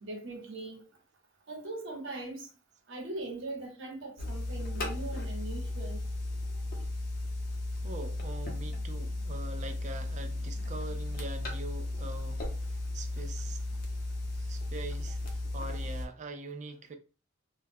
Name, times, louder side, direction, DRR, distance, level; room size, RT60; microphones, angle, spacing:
voice 1, 0.0-0.9 1.5-2.5 2.9-6.0, right 2 dB, 65° right, 0.9 m, -40 dB
sound 1, 4.2-16.1, left 2 dB, 45° left, 0.7 m, -35 dB
voice 2, 7.8-12.5 12.9-13.6 14.3-17.0, right 2 dB, 35° right, 0.4 m, -43 dB
2.3 x 2.1 x 3.3 m
head